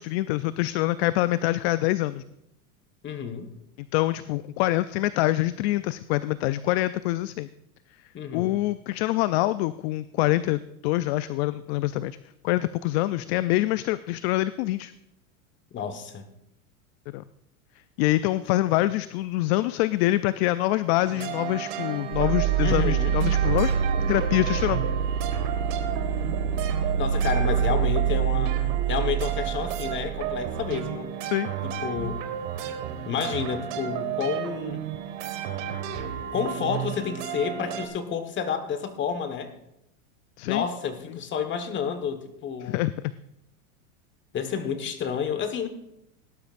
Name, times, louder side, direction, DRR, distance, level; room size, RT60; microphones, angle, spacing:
voice 1, 0.0-2.2 3.9-7.5 8.3-12.2 12.4-14.9 17.1-17.2 18.0-23.7 24.1-24.9 31.2-31.5 40.4-40.7 42.6-42.9, left 16 dB, 50° left, 15 dB, 0.4 m, -25 dB
voice 2, 3.0-3.5 8.1-8.5 15.7-16.2 22.6-23.2 27.0-28.5 28.9-31.1 31.6-32.2 32.6-32.7 33.0-34.8 36.3-39.5 40.4-42.8 44.3-45.7, left 7 dB, 25° left, 8 dB, 1.4 m, -30 dB
sound 1, 21.0-37.9, right 9 dB, 60° right, 1.7 m, -33 dB
sound 2, 22.1-30.8, right 8 dB, 80° right, 1.1 m, -26 dB
18.0 x 11.5 x 2.5 m, 0.81 s
supercardioid pair, 125°, 43 cm